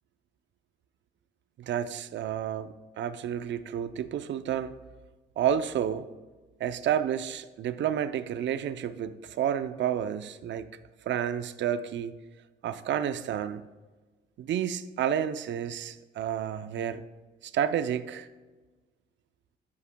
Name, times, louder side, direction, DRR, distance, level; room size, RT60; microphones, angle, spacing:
voice 1, 1.6-4.7 5.4-6.1 6.6-10.7 11.0-12.1 12.6-13.6 14.4-17.0 17.4-18.3, right 9 dB, 65° right, 13 dB, 0.6 m, -30 dB
11.0 x 8.4 x 2.2 m, 1.2 s
cardioid pair, 90°, 20 cm